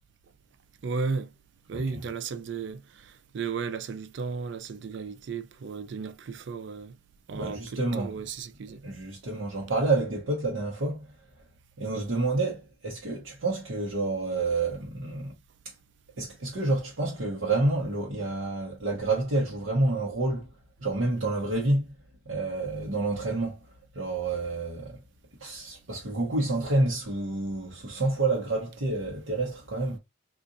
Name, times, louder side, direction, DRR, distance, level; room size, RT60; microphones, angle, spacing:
voice 1, 0.8-1.3 1.7-6.9 7.3-8.8, right 5 dB, 65° right, 0.4 m, -34 dB
voice 2, 7.3-8.2 8.8-11.1 11.8-15.4 15.6-15.7 16.2-20.5 20.8-21.9 22.2-23.6 23.9-25.0 25.4-30.0, right 2 dB, 90° right, 1.0 m, -28 dB
3.8 x 2.5 x 2.5 m
head